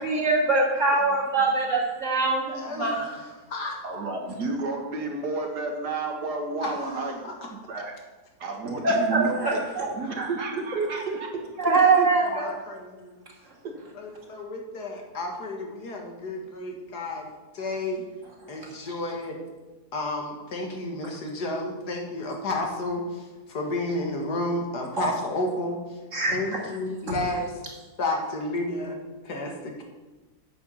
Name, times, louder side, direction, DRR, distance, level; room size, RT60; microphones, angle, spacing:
voice 1, 0.0-3.1 8.8-9.9 11.6-12.5 25.0-25.1 26.1-26.6, right 3 dB, 50° right, -2 dB, 2.6 m, -23 dB
voice 2, 2.6-3.8 6.6-6.9 7.2-7.3 10.0-10.1 12.3-13.2 14.0-17.3 17.5-18.0 18.5-19.4 19.9-23.0 23.5-25.8 26.3-27.5 28.0-29.0 29.2-29.8, left 2 dB, 80° left, 1 dB, 2.2 m, -31 dB
voice 3, 3.8-7.9 8.4-9.7 9.9-12.1 13.6-13.7, right 3 dB, 85° right, 2 dB, 2.1 m, -31 dB
9.3 x 7.7 x 5.6 m, 1.2 s
omnidirectional pair, 1.7 m